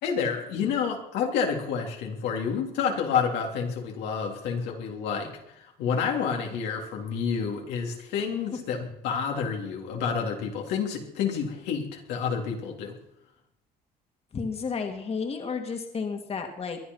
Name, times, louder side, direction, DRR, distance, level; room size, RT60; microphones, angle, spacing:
voice 1, 0.0-5.3 5.8-12.9, left 6 dB, 90° left, 1 dB, 3.3 m, -29 dB
voice 2, 14.3-16.8, left 5 dB, 35° left, 4 dB, 2.3 m, -32 dB
22.5 x 11.0 x 5.6 m, 0.82 s
cardioid pair, 110°, 17 cm